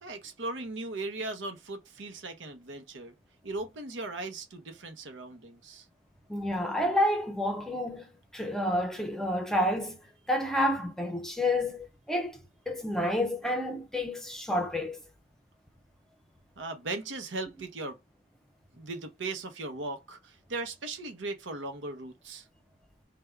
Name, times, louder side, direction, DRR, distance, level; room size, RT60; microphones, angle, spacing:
voice 1, 0.0-3.1 3.4-5.9 16.6-18.0 18.8-22.5, right 2 dB, 90° right, 0.8 m, -38 dB
voice 2, 6.3-12.4 12.7-15.0, left 1 dB, 5° left, 0.5 m, -29 dB
3.3 x 2.2 x 3.4 m
head